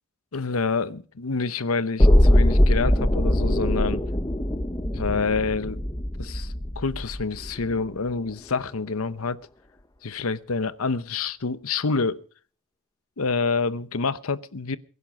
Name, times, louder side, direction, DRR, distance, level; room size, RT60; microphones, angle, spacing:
voice 1, 0.3-4.0 4.9-5.8 6.2-9.4 10.0-12.2 13.2-14.8, left 4 dB, 85° left, 0.9 m, -27 dB
sound 1, 2.0-8.0 8.3-8.4, left 1 dB, 15° left, 1.0 m, -21 dB
22.0 x 11.0 x 5.2 m
head